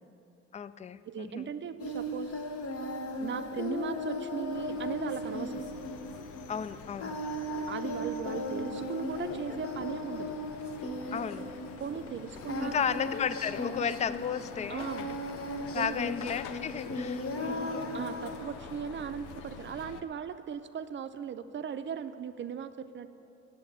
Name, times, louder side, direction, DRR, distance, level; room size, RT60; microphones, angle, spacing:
voice 1, 0.5-1.5 6.5-7.2 11.1-11.5 12.6-14.9 15.7-17.8, left 7 dB, 25° left, 14 dB, 0.3 m, -34 dB
voice 2, 1.0-2.3 3.2-5.6 7.6-10.3 11.8-13.1 14.7-15.1 15.7-16.0 17.9-23.1, right 7 dB, 40° right, 11 dB, 0.6 m, -38 dB
Singing, 1.8-18.4, left 1 dB, 50° left, 1.0 m, -37 dB
sound 1, 4.5-20.0, left 6 dB, 90° left, 0.7 m, -47 dB
8.5 x 7.4 x 8.7 m, 2.8 s
cardioid pair, 90°, 30 cm